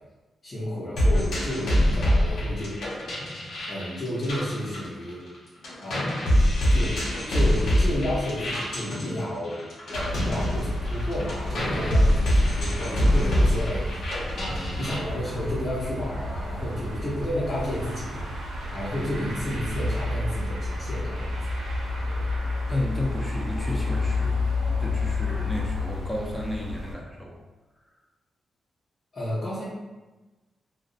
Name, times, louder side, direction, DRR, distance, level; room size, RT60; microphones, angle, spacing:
voice 1, 0.4-2.8 3.7-5.2 5.8-7.0 7.3-9.6 9.9-21.4 22.1-22.2 22.7-22.8 29.1-29.6, left 1 dB, 40° left, -11 dB, 0.9 m, -32 dB
sound 1, 1.0-5.4 5.6-15.0, equal, 80° left, 0.7 m, -24 dB
sound 2, 9.9-26.9, left 2 dB, 80° right, 0.6 m, -30 dB
voice 2, 22.7-24.5 24.8-27.4, left 1 dB, 5° left, -3 dB, 0.5 m, -32 dB
2.5 x 2.0 x 2.5 m, 1.2 s
cardioid pair, 60°, 0 cm